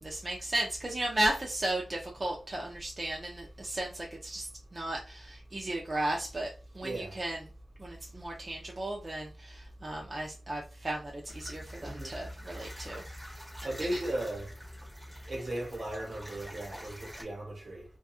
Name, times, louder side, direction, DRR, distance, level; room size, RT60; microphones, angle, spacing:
voice 1, 0.0-7.4 7.8-13.0 13.9-14.0, right 1 dB, 30° right, 0.4 m, -35 dB
voice 2, 6.8-7.1 11.8-12.1 13.6-14.5 15.3-17.8, right 1 dB, 60° right, 1.0 m, -36 dB
sound 1, 11.3-17.2, equal, 10° right, 0.9 m, -46 dB
2.8 x 2.3 x 2.4 m
wide cardioid pair, 130°, 0 cm